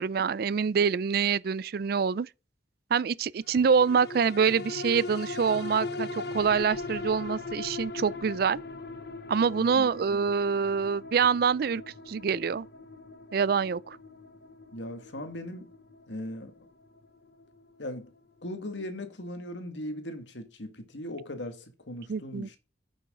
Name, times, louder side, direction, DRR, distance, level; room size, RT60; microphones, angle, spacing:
voice 1, 0.0-2.3 2.9-8.6 9.3-11.8 12.1-12.7 13.3-14.0 22.1-22.5, right 6 dB, 55° right, 0.4 m, -26 dB
sound 1, 3.5-18.2 18.6-18.7, left 3 dB, 65° left, 1.0 m, -40 dB
voice 2, 14.7-15.7 16.1-16.5 17.8-18.1 18.4-22.6, left 1 dB, 90° left, 1.9 m, -38 dB
9.2 x 7.2 x 3.7 m
head